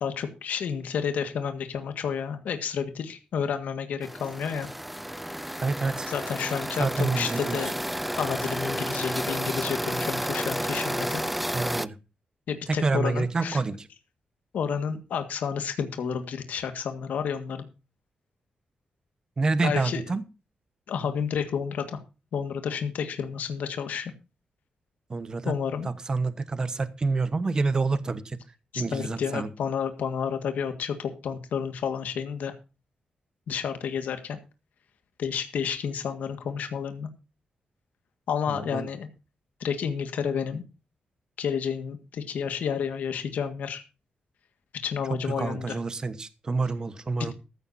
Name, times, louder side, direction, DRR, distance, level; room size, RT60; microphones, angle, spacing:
voice 1, 0.0-4.7 6.1-7.7 8.2-11.2 12.5-13.6 14.5-17.6 19.6-20.0 20.9-22.0 22.3-24.1 25.5-25.9 28.7-32.6 33.5-34.4 35.2-37.1 38.3-39.1 39.6-40.6 41.4-43.8 44.8-45.8 47.2-47.3, left 7 dB, 85° left, 8 dB, 1.8 m, -30 dB
sound 1, 4.0-11.9, equal, 5° right, 0.5 m, -31 dB
voice 2, 5.6-6.1 6.8-7.6 11.5-12.0 12.8-13.9 19.4-20.2 25.1-25.5 25.8-28.4 28.7-29.5 38.5-38.9 45.4-47.3, right 3 dB, 30° right, 14 dB, 1.1 m, -28 dB
14.5 x 13.5 x 2.7 m, 0.30 s
wide cardioid pair, 160°, 3 cm